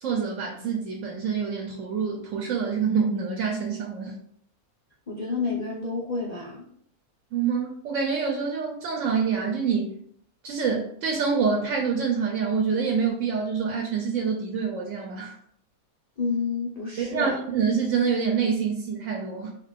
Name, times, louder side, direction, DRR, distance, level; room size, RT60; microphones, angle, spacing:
voice 1, 0.0-4.2 7.3-10.0 10.4-15.4 17.0-19.5, right 6 dB, 65° right, 0 dB, 0.9 m, -26 dB
voice 2, 5.1-6.7 16.2-17.4, left 4 dB, 80° left, -4 dB, 0.3 m, -29 dB
2.9 x 2.4 x 3.4 m, 0.64 s
omnidirectional pair, 1.5 m